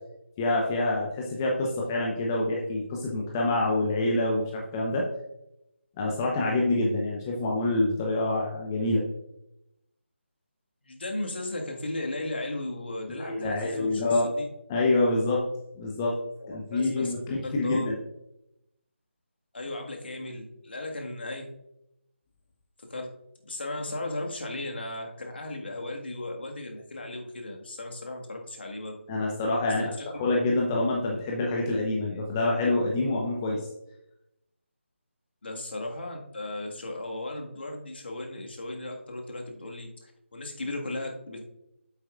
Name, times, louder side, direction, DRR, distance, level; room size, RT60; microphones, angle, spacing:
voice 1, 0.4-5.1 6.0-9.0 13.1-14.3 14.7-15.4 15.8-16.2 16.5-18.0 29.1-33.6, left 2 dB, 15° left, -2 dB, 0.9 m, -26 dB
voice 2, 10.8-14.5 16.4-17.1 17.4-17.8 19.5-21.5 22.8-23.1 23.4-29.0 29.8-30.1 35.4-41.4, left 2 dB, 55° left, 1 dB, 1.7 m, -36 dB
9.0 x 7.9 x 2.4 m, 0.84 s
figure-of-eight pair, 160°, 7 cm